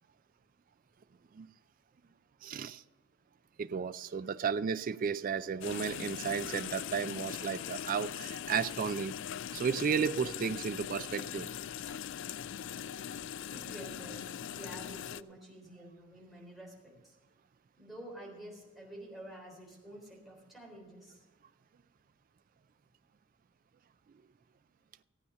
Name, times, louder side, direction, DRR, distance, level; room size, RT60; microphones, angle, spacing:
voice 1, 2.4-2.8 3.6-9.2 9.5-11.6 11.9-12.0, right 6 dB, 40° right, 0.3 m, -33 dB
sound 1, 5.6-15.2, left 9 dB, 60° left, 0.3 m, -41 dB
voice 2, 13.5-17.1 17.8-21.2, right 1 dB, ahead, 3.7 m, -49 dB
15.5 x 8.6 x 5.6 m
head